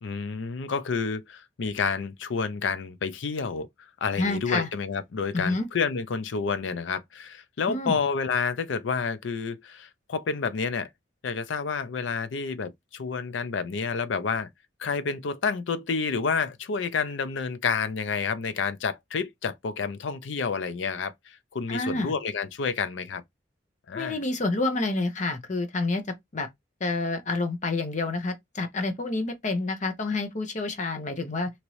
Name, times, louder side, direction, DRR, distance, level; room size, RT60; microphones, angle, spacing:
voice 1, 0.0-3.7 4.0-10.9 11.2-14.5 14.8-23.2 23.9-24.2, left 5 dB, 80° left, 0.5 m, -29 dB
voice 2, 4.2-4.7 5.3-5.7 7.7-8.0 21.7-22.1 23.9-26.0 26.3-26.5 26.8-31.5, left 2 dB, 40° left, 0.7 m, -28 dB
2.9 x 2.6 x 3.0 m
head